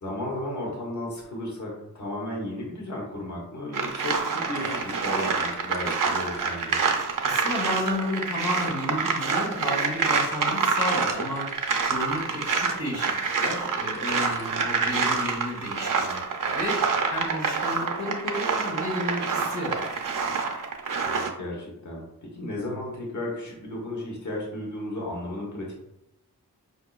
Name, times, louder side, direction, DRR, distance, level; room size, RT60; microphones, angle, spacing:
voice 1, 0.0-6.8 21.0-25.7, left 1 dB, 50° left, -3 dB, 1.1 m, -34 dB
sound 1, 3.7-21.3, right 5 dB, 55° right, 0.6 m, -27 dB
sound 2, 4.3-6.1 6.3-6.5 6.8-6.9 7.1-7.2 7.5-7.6 7.8-8.4 8.7-8.8 9.2-14.7 15.2-15.3, equal, 10° left, 0.7 m, -44 dB
voice 2, 7.2-11.5 11.8-13.1 13.4-16.8 17.1-19.8, left 1 dB, 85° left, -4 dB, 1.2 m, -32 dB
4.9 x 2.7 x 2.3 m, 0.87 s
wide cardioid pair, 60°, 38 cm